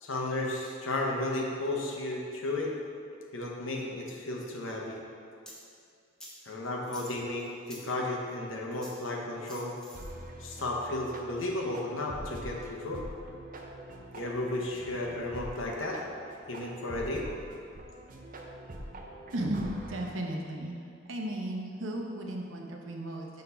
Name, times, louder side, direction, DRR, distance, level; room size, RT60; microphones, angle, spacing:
voice 1, 0.0-2.7 3.3-5.0 6.4-9.8 10.4-13.0 14.1-16.0 16.5-17.3, left 2 dB, 80° left, -1 dB, 1.0 m, -33 dB
sound 1, 5.5-5.6 6.2-6.4 6.8-7.9 8.7-9.0 9.5-10.1, equal, 5° left, 0.9 m, -48 dB
sound 2, 9.9-20.1, right 1 dB, 45° right, 0.6 m, -45 dB
voice 2, 19.3-20.7 21.1-23.3, right 1 dB, 75° right, 0 dB, 0.9 m, -35 dB
6.4 x 4.1 x 5.6 m, 2.4 s
head